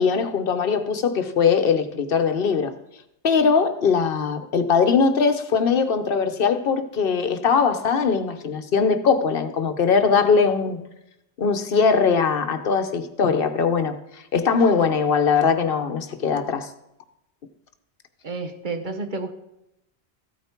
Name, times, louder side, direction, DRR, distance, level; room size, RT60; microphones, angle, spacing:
voice 1, 0.0-2.7 3.2-10.8 11.4-14.0 14.3-16.7, left 5 dB, 55° left, 1.1 m, -21 dB
voice 2, 18.2-19.3, right 3 dB, 45° right, 1.1 m, -30 dB
14.5 x 9.1 x 4.5 m
omnidirectional pair, 1.1 m